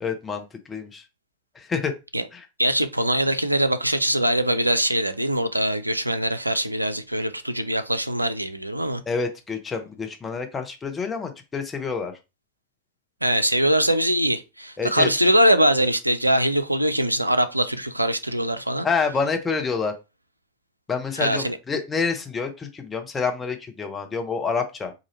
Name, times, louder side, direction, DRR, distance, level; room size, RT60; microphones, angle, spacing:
voice 1, 0.0-1.0 1.5-2.0 2.3-2.4 9.1-12.1 14.8-15.1 18.8-19.9 20.9-24.9, left 5 dB, 15° left, 0.7 m, -27 dB
voice 2, 2.6-9.0 13.2-18.9 21.2-21.6, right 1 dB, 85° right, 0.4 m, -22 dB
4.1 x 2.5 x 2.9 m
figure-of-eight pair, 90°, 0 cm